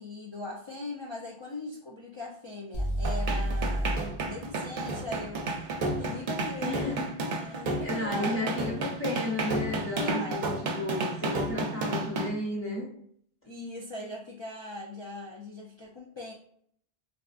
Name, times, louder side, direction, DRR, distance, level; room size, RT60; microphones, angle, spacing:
voice 1, 0.0-5.5 6.0-7.0 7.3-8.8 9.1-9.5 10.2-10.6 11.5-11.8 13.4-16.3, left 2 dB, 45° left, -3 dB, 0.3 m, -40 dB
sound 1, 2.7-6.7, equal, 70° left, 1.1 m, -33 dB
sound 2, 3.0-12.3, right 2 dB, 55° right, 0.6 m, -31 dB
voice 2, 6.6-7.1 7.4-7.6 7.8-12.9, left 1 dB, 15° left, -5 dB, 1.1 m, -33 dB
3.7 x 2.3 x 2.4 m, 0.64 s
omnidirectional pair, 1.0 m